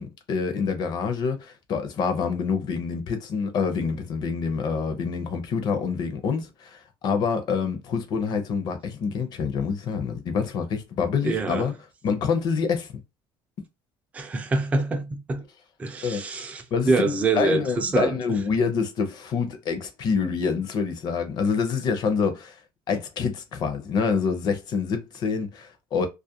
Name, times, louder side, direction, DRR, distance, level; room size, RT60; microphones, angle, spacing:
voice 1, 0.0-11.7 12.0-12.9 16.0-16.2 16.7-22.5 22.9-26.1, left 5 dB, 45° left, 0.6 m, -26 dB
voice 2, 11.3-11.7 14.1-15.4 15.8-18.4, right 3 dB, 15° right, 0.3 m, -25 dB
2.4 x 2.1 x 2.7 m
cardioid pair, 145°, 10 cm